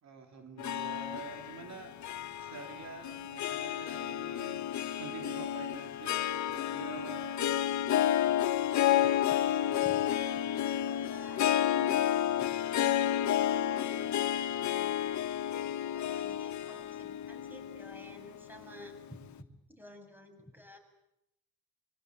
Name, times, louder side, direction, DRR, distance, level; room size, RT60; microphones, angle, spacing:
voice 1, 0.0-2.0 2.4-7.4, right 6 dB, 65° right, 5 dB, 3.3 m, -47 dB
Harp, 0.6-19.0, left 11 dB, 70° left, 1.4 m, -31 dB
voice 2, 9.0-10.2 10.8-15.0 15.9-20.8, equal, 5° right, 5 dB, 7.4 m, -52 dB
25.0 x 22.5 x 9.7 m, 0.85 s
cardioid pair, 90°, 30 cm